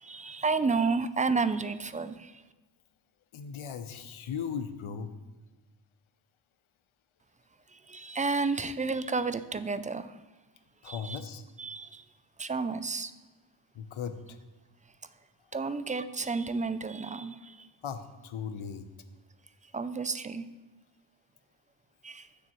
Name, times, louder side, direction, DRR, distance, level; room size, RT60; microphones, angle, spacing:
voice 1, 0.0-2.3 7.9-10.2 10.8-11.2 11.6-12.0 12.4-13.1 15.5-17.7 19.7-20.5 22.0-22.3, right 4 dB, 15° right, 12 dB, 0.3 m, -31 dB
voice 2, 3.3-5.1 10.8-11.4 13.7-14.4 15.5-15.8 17.8-18.9, left 7 dB, 80° left, 9 dB, 0.9 m, -38 dB
15.5 x 6.9 x 3.1 m, 1.2 s
wide cardioid pair, 95°, 48 cm